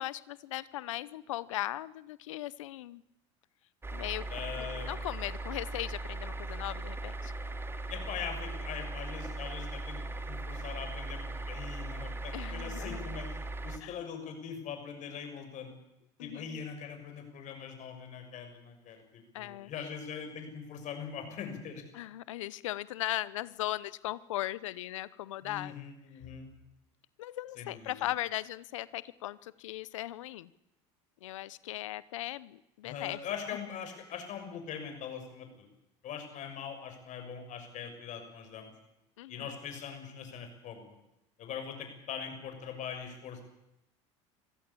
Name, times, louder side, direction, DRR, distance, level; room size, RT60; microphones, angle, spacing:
voice 1, 0.0-3.0 3.9-4.2 4.6-7.3 12.3-13.2 13.8-13.9 16.2-16.7 19.3-19.9 21.9-25.8 27.2-30.5 31.2-33.2 39.2-39.5, left 15 dB, 90° left, 19 dB, 0.8 m, -38 dB
sound 1, 3.8-13.8, right 2 dB, 15° right, 2.3 m, -39 dB
voice 2, 4.3-4.9 7.9-10.0 10.3-15.7 16.2-21.8 25.4-26.5 27.6-28.0 32.8-35.7 36.0-38.7 39.3-41.0 41.4-43.5, left 7 dB, 50° left, 6 dB, 6.6 m, -42 dB
25.0 x 15.5 x 8.6 m, 0.89 s
supercardioid pair, 90°, 16 cm